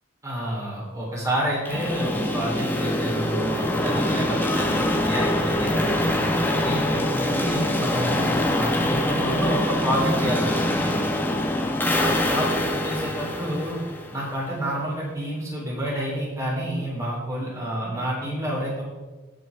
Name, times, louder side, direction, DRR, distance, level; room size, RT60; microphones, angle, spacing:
voice 1, 0.2-5.8 6.6-10.9 12.0-13.8 14.1-18.8, equal, 15° right, -5 dB, 3.8 m, -29 dB
sound 1, 1.7-14.5, left 1 dB, 10° left, 1.0 m, -24 dB
18.0 x 6.3 x 3.6 m, 1.2 s
head